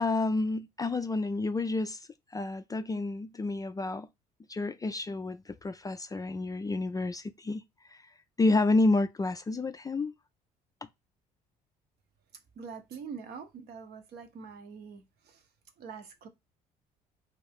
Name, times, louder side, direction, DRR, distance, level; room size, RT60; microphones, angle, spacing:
voice 1, 0.0-2.0 2.3-4.1 4.5-8.0 8.4-10.1, left 2 dB, 20° left, 0.3 m, -29 dB
voice 2, 12.6-15.4 15.8-16.3, right 6 dB, 60° right, 0.8 m, -44 dB
2.5 x 2.4 x 3.5 m
hypercardioid pair, 55°, 19 cm